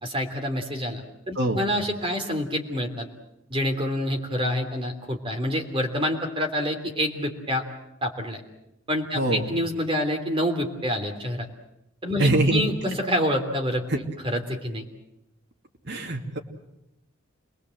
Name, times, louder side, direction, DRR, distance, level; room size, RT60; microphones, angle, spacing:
voice 1, 0.0-3.1 3.5-7.6 8.0-8.4 8.9-11.5 12.0-13.8 14.2-14.8, equal, 25° right, 3 dB, 3.2 m, -27 dB
voice 2, 1.3-1.6 9.1-9.5 12.2-12.6 13.9-14.0 15.8-16.4, right 2 dB, 55° right, 3 dB, 2.7 m, -23 dB
28.0 x 21.0 x 7.9 m, 0.85 s
head